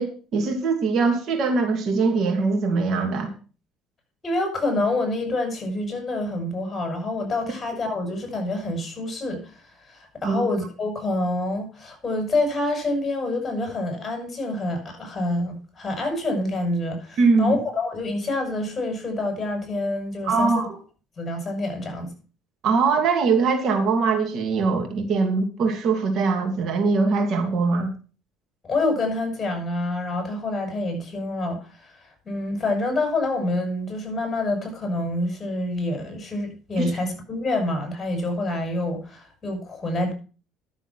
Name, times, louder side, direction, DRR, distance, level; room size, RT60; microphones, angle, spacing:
voice 1, 0.0-3.3 10.2-10.4 17.2-17.6 20.2-20.8 22.6-27.9 36.8-36.9, right 4 dB, 55° right, 2.5 m, -22 dB
voice 2, 4.2-20.7 21.2-22.1 28.7-40.1, left 2 dB, 25° left, 6.2 m, -27 dB
12.0 x 7.1 x 5.8 m
cardioid pair, 100°, 0 cm